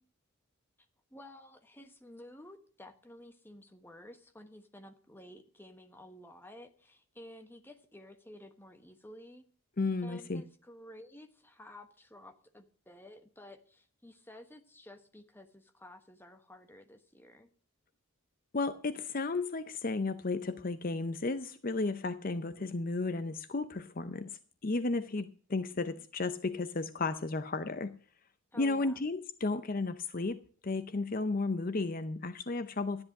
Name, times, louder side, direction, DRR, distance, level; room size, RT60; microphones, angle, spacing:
voice 1, 1.1-9.4 10.0-17.5 28.5-29.0, left 1 dB, 10° left, 1.2 m, -52 dB
voice 2, 9.8-10.4 18.5-28.0 28.6-33.0, left 3 dB, 40° left, 0.6 m, -33 dB
13.0 x 10.5 x 6.5 m
head